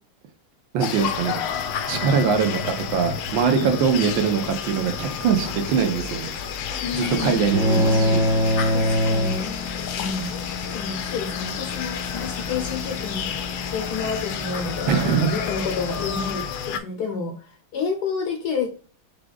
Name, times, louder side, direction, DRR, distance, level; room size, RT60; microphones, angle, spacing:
voice 1, 0.7-1.4 1.9-6.3 6.9-8.2 14.9-15.3, right 6 dB, 75° right, 6 dB, 1.5 m, -22 dB
sound 1, 0.8-16.8, left 7 dB, 85° left, 1.5 m, -30 dB
voice 2, 6.8-8.2 8.7-9.5 10.0-10.3 10.7-18.7, left 5 dB, 70° left, 5 dB, 1.0 m, -30 dB
sound 2, 7.0-16.3, left 5 dB, 25° right, 0.6 m, -36 dB
sound 3, 7.5-10.1, equal, 55° right, 1.1 m, -22 dB
4.9 x 3.5 x 2.3 m, 0.40 s
omnidirectional pair, 2.3 m